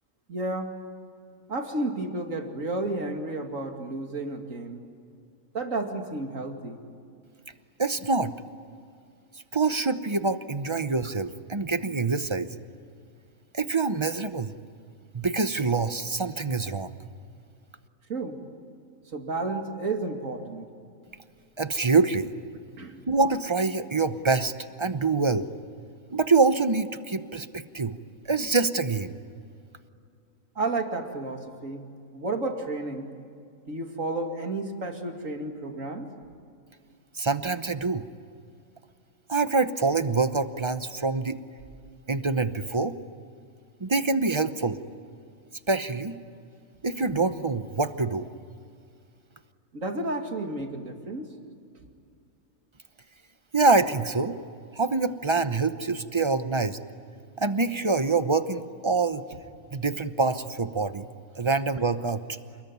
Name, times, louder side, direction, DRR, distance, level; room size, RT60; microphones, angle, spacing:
voice 1, 0.3-0.7 1.5-4.8 5.5-6.8 18.1-18.4 19.1-20.7 22.8-23.0 30.6-31.9 32.1-33.1 33.7-36.1 49.7-51.3, right 2 dB, 65° right, 4 dB, 2.8 m, -32 dB
voice 2, 7.8-8.3 9.5-12.5 13.5-14.5 15.1-17.0 21.6-22.3 23.1-24.5 24.8-25.5 26.1-28.0 28.2-29.2 37.2-38.1 39.3-41.4 42.1-43.0 43.8-44.8 45.7-46.1 46.8-48.3 53.5-54.4 54.8-56.8 57.4-59.2 59.7-61.1 61.4-62.2, right 4 dB, 25° right, 11 dB, 0.8 m, -25 dB
28.5 x 21.0 x 9.5 m, 2.3 s
omnidirectional pair, 1.5 m